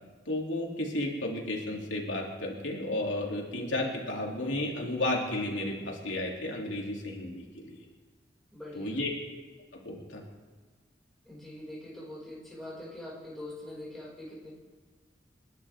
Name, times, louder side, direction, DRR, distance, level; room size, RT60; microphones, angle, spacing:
voice 1, 0.2-7.7 8.7-9.1 9.7-10.2, left 1 dB, 85° left, -1 dB, 3.0 m, -33 dB
voice 2, 8.5-9.0 11.2-14.5, left 1 dB, ahead, -7 dB, 5.8 m, -43 dB
29.5 x 11.5 x 3.6 m, 1.3 s
head